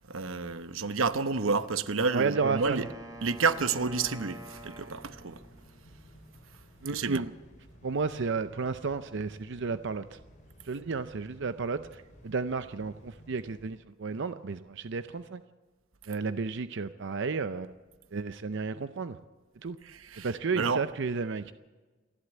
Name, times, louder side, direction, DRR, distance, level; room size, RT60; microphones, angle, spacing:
voice 1, 0.1-2.9 3.2-5.4 6.9-7.2 19.8-20.9, right 4 dB, 90° right, 1.0 m, -30 dB
voice 2, 2.1-2.9 6.8-7.3 7.8-10.2 10.6-11.9 12.2-15.4 16.1-17.7 18.1-19.2 19.6-19.8 20.2-21.5, right 4 dB, 65° right, 0.6 m, -32 dB
sound 1, 2.3-13.7, equal, 40° left, 6.0 m, -55 dB
Wind instrument woodwind instrument, 2.3-5.8, right 2 dB, 20° right, 2.9 m, -46 dB
28.0 x 11.5 x 8.1 m
head